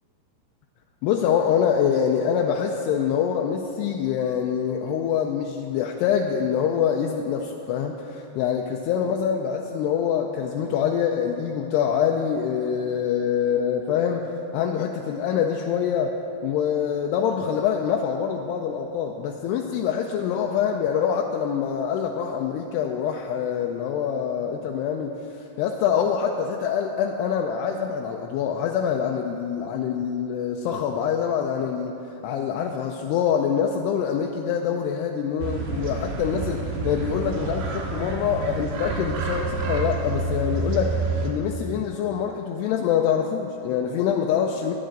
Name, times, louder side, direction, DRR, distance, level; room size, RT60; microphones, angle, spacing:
voice 1, 1.0-25.2 25.6-44.7, left 8 dB, 85° left, 2 dB, 2.5 m, -25 dB
sound 1, 35.4-41.3, right 4 dB, 80° right, 3.5 m, -28 dB
16.5 x 10.5 x 3.9 m, 2.9 s
omnidirectional pair, 5.1 m